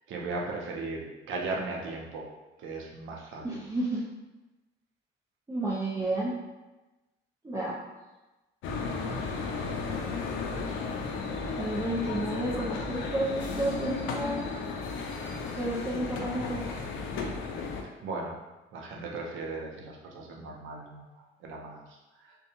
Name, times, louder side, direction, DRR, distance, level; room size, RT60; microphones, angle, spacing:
voice 1, 0.1-2.3 2.6-3.6 18.0-18.4 18.7-21.1 21.4-21.8 22.2-22.4, right 3 dB, 80° right, -1 dB, 0.6 m, -37 dB
voice 2, 3.4-4.0 5.5-6.3 7.4-7.9 11.6-14.4 15.6-16.6, right 1 dB, 15° right, -8 dB, 0.5 m, -31 dB
sound 1, 8.6-17.8, left 4 dB, 85° left, 0.4 m, -34 dB
2.6 x 2.2 x 2.7 m, 1.1 s
cardioid pair, 90°, 20 cm